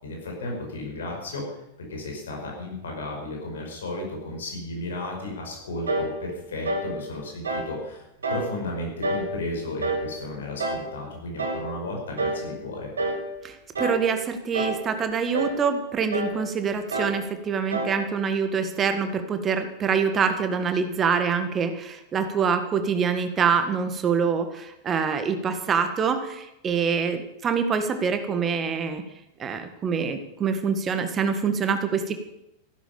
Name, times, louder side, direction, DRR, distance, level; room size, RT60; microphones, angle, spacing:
voice 1, 0.0-1.6 1.9-8.0 8.3-12.9, left 2 dB, 65° left, 1 dB, 5.5 m, -34 dB
sound 1, 5.9-6.2 6.6-6.9 7.4-7.7 8.2-8.5 9.0-9.3 9.8-10.1 10.6-10.9 11.4-11.7 12.2-12.5 13.0-13.3 13.7-14.1 14.5-14.9 15.3-15.6 16.1-16.4 16.9-17.2 17.7-18.0, right 2 dB, 70° right, 2.4 m, -28 dB
voice 2, 13.4-29.0 29.4-32.2, right 6 dB, 25° right, 8 dB, 1.8 m, -25 dB
14.5 x 12.5 x 6.9 m, 0.85 s
figure-of-eight pair, 90°, 0 cm